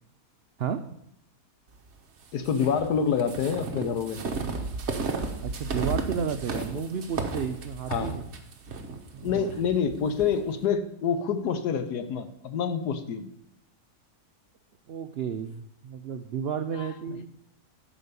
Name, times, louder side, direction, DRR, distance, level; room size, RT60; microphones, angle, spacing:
voice 1, 2.3-4.2 6.5-6.6 7.9-8.2 9.2-13.3 16.8-17.2, left 7 dB, 85° left, 10 dB, 1.4 m, -27 dB
sound 1, 2.4-10.3, right 4 dB, 50° right, 1.3 m, -33 dB
voice 2, 5.4-8.2 9.1-9.5 14.9-17.3, right 7 dB, 85° right, 9 dB, 0.5 m, -32 dB
11.0 x 5.0 x 6.8 m, 0.76 s
omnidirectional pair, 1.7 m